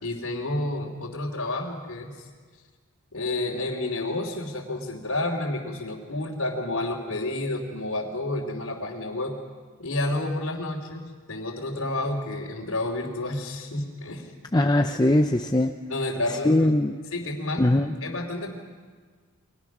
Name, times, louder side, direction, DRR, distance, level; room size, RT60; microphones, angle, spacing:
voice 1, 0.0-2.3 3.1-9.4 9.8-14.3 15.9-16.7 17.1-17.7 18.0-18.5, left 2 dB, 80° left, -6 dB, 3.0 m, -30 dB
voice 2, 14.5-15.7 16.3-17.0 17.6-17.9, left 1 dB, 20° left, 5 dB, 0.6 m, -21 dB
30.0 x 23.5 x 6.1 m, 1.5 s
head